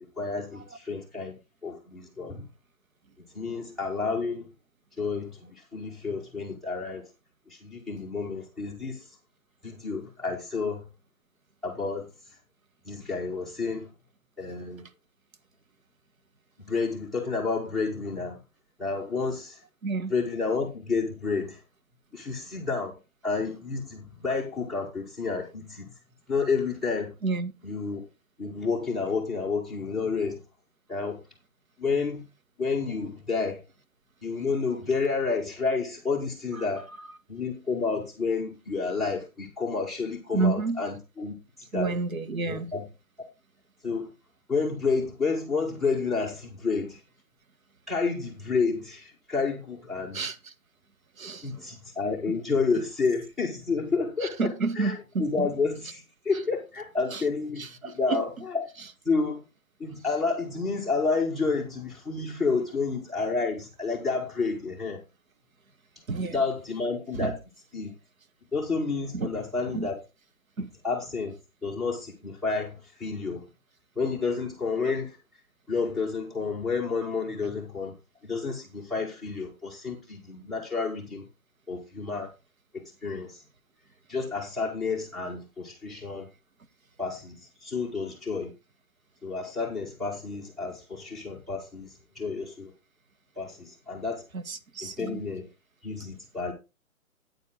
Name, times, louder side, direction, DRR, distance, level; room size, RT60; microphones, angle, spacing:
voice 1, 0.2-1.3 1.6-2.4 3.3-4.5 5.0-7.0 7.5-9.2 9.6-10.9 11.6-12.1 12.8-13.9 14.4-14.8 16.7-18.4 18.8-19.6 20.1-21.6 22.1-23.0 23.2-25.9 26.3-27.1 27.6-28.0 28.4-30.4 30.9-31.2 31.8-32.2 32.6-33.6 34.2-36.9 37.3-42.0 42.4-42.8 43.8-44.1 44.5-47.0 47.9-50.2 51.4-58.7 59.0-59.4 59.8-65.0 66.3-67.3 67.7-67.9 68.5-69.9 70.8-71.3 71.6-73.4 74.0-75.2 75.7-77.9 78.2-81.2 81.7-82.3 82.7-83.4 84.1-86.3 87.0-88.5 89.2-92.7 93.4-94.2 94.8-95.5 95.8-96.5, left 4 dB, ahead, 0.9 m, -30 dB
voice 2, 19.8-20.1 27.2-27.5 36.6-36.7 40.3-40.8 41.7-42.7 50.1-50.5 51.2-51.7 52.3-52.4 54.2-55.5 57.1-57.2 57.6-58.2 66.1-66.4 67.1-67.4 69.1-69.3 69.7-69.9 70.6-70.7 94.3-95.2, right 4 dB, 70° right, 1.6 m, -30 dB
9.4 x 9.0 x 3.8 m
hypercardioid pair, 155°, 42 cm